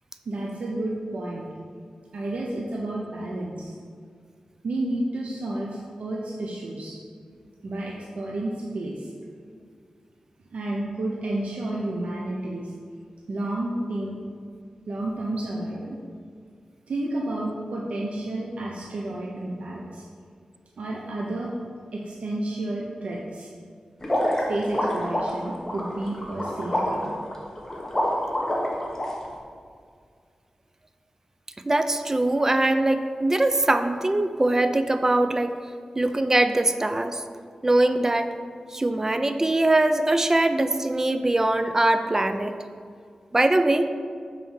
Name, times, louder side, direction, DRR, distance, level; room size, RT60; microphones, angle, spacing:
voice 1, 0.3-1.5 2.1-3.7 4.6-7.0 7.6-9.1 10.5-12.7 13.3-14.2 14.9-16.0 16.9-20.0 20.8-21.5 21.9-23.5 24.5-27.2, right 1 dB, 80° right, -3 dB, 0.7 m, -31 dB
sound 1, 24.0-29.0, left 1 dB, 20° left, 1.2 m, -27 dB
voice 2, 31.7-35.5 36.0-37.2 37.6-38.3 38.7-42.6 43.3-43.9, right 2 dB, 25° right, 9 dB, 0.4 m, -22 dB
5.7 x 4.2 x 6.2 m, 2.1 s
wide cardioid pair, 100°, 2 cm